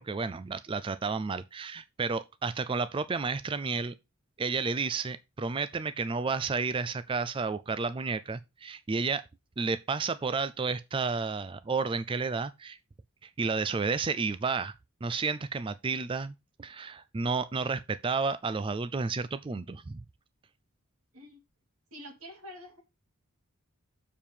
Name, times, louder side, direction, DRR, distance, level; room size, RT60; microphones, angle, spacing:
voice 1, 0.0-3.9 4.4-9.2 9.6-12.8 13.2-14.7 15.0-16.3 16.6-20.0, right 4 dB, 25° right, 0.3 m, -31 dB
voice 2, 21.9-22.8, equal, 90° right, 3.0 m, -46 dB
7.2 x 4.6 x 6.8 m
head